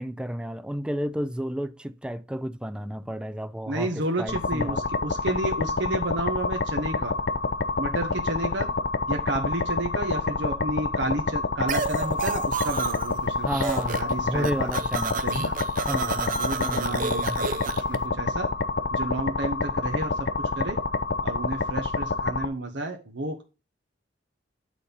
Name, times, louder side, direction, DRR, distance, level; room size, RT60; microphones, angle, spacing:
voice 1, 0.0-4.8 13.4-15.2 15.8-17.5, equal, 5° right, 0.5 m, -32 dB
voice 2, 3.7-7.1 7.8-8.7 9.1-13.5 13.8-14.7 15.1-15.6 15.9-18.5 18.9-20.3 20.6-20.8 21.2-23.4, right 1 dB, 80° right, 1.3 m, -31 dB
sound 1, 4.3-22.5, left 3 dB, 60° left, 0.6 m, -28 dB
sound 2, 11.7-13.2 13.5-14.1 14.4-18.0, right 5 dB, 50° right, 0.7 m, -31 dB
9.1 x 4.1 x 5.4 m
head